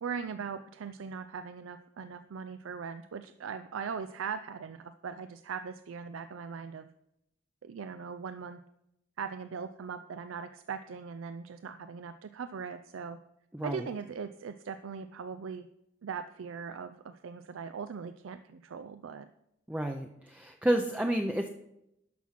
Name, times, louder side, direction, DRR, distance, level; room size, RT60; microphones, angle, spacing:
voice 1, 0.0-6.9 7.6-8.6 9.2-13.2 13.6-15.7 16.0-19.3, right 6 dB, 85° right, 11 dB, 0.4 m, -40 dB
voice 2, 13.5-13.9 19.7-21.5, right 1 dB, 5° right, 4 dB, 0.5 m, -30 dB
12.0 x 6.0 x 5.8 m, 0.84 s
head